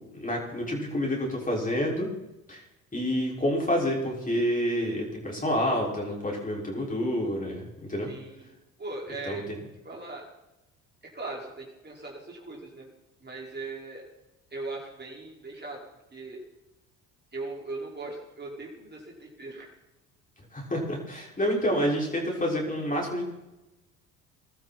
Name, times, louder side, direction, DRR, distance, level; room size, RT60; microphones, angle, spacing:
voice 1, 0.0-2.1 2.5-2.6 2.9-8.1 9.2-9.6 20.5-23.3, equal, 20° left, -2 dB, 5.9 m, -28 dB
voice 2, 8.0-8.5 8.8-9.4 9.8-10.2 11.1-12.9 13.2-14.0 14.5-15.8 16.1-16.4 17.3-19.7, right 2 dB, 25° right, -2 dB, 5.4 m, -39 dB
22.0 x 12.5 x 4.5 m, 1.0 s
hypercardioid pair, 55°, 39 cm